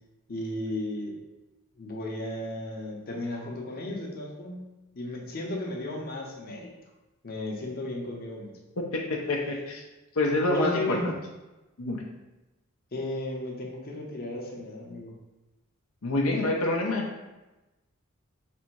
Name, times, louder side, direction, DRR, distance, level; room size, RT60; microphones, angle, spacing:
voice 1, 0.3-1.2 1.8-4.6 4.9-6.7 7.2-8.5 10.5-11.1 12.9-15.1, left 1 dB, 45° left, -1 dB, 0.8 m, -34 dB
voice 2, 9.3-9.8 10.2-11.1 11.8-12.0 16.0-17.0, left 2 dB, 80° left, -1 dB, 0.6 m, -26 dB
3.5 x 2.7 x 4.5 m, 1.1 s
head